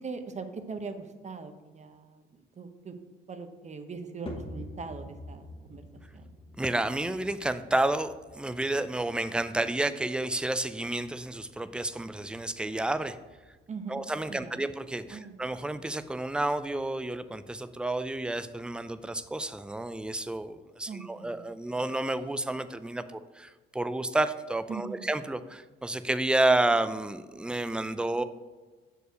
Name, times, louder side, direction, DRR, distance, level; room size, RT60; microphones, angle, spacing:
voice 1, 0.0-2.2 2.6-3.0 3.3-5.8 6.1-6.3 13.7-14.0 14.3-14.7 15.1-15.4 20.9-21.5 24.7-25.0, right 4 dB, 35° right, 8 dB, 0.8 m, -41 dB
sound 1, 4.3-20.7, left 1 dB, 25° left, 1.2 m, -50 dB
voice 2, 6.6-13.2 13.9-28.2, right 2 dB, 5° right, 12 dB, 0.4 m, -30 dB
6.6 x 4.6 x 5.0 m, 1.3 s
cardioid pair, 90°, 20 cm